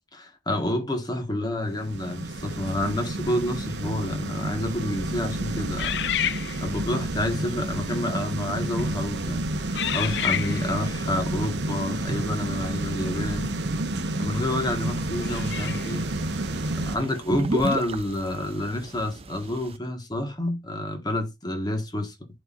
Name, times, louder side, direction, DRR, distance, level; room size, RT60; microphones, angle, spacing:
voice 1, 0.1-6.0 6.6-9.5 9.9-13.5 14.2-16.0 16.8-22.1, left 1 dB, 25° left, 1.5 m, -29 dB
sound 1, 1.7-17.0, right 2 dB, 85° right, 0.9 m, -30 dB
sound 2, 5.8-7.0 7.7-8.0 8.7-9.0 9.7-10.9 13.6-13.7 15.2-16.0, left 10 dB, 75° left, 0.4 m, -30 dB
sound 3, 14.3-19.8, right 3 dB, 35° right, 0.5 m, -35 dB
10.5 x 4.4 x 2.5 m
head